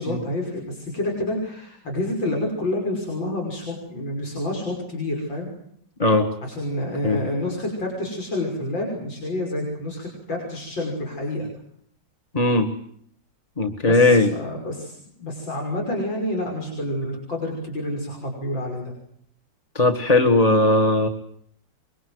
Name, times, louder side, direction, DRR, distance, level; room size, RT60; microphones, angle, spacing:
voice 1, 0.0-5.5 6.4-11.5 13.9-18.9, left 1 dB, 80° left, 0 dB, 6.7 m, -28 dB
voice 2, 12.3-12.7 13.6-14.3 19.8-21.1, left 2 dB, 20° left, 6 dB, 1.8 m, -18 dB
26.0 x 23.0 x 8.0 m, 0.66 s
omnidirectional pair, 2.0 m